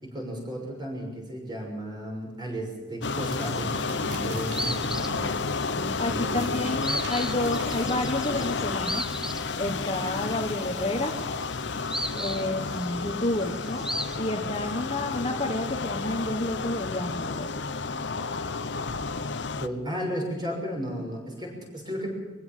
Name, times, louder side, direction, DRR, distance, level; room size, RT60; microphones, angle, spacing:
voice 1, 0.0-5.2 6.1-6.6 19.5-22.1, equal, 20° right, 0 dB, 6.2 m, -34 dB
sound 1, 3.0-19.7, left 4 dB, 70° left, 0.9 m, -31 dB
sound 2, 3.0-3.9 4.2-14.2, equal, 5° right, 1.0 m, -37 dB
sound 3, 3.2-4.7 6.2-8.5, right 3 dB, 75° right, 4.2 m, -45 dB
voice 2, 5.7-9.0 9.6-11.2 12.1-13.9 14.2-17.7, left 1 dB, 30° left, 4 dB, 1.3 m, -30 dB
22.5 x 16.0 x 7.5 m, 1.2 s
head